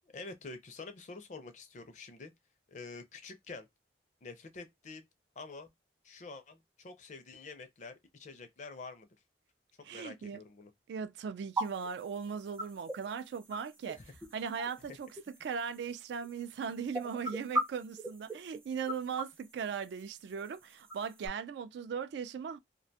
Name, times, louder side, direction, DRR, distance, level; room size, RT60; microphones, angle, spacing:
voice 1, 0.0-2.3 2.7-3.7 4.2-5.0 5.4-5.7 6.0-9.1 9.8-10.7 13.9-14.1, left 3 dB, 40° left, 0.5 m, -47 dB
voice 2, 9.8-10.4 10.9-14.0 14.3-15.1 15.4-22.6, right 6 dB, 75° right, 0.3 m, -38 dB
sound 1, 11.6-21.3, right 1 dB, 10° right, 0.4 m, -41 dB
2.4 x 2.2 x 2.6 m
head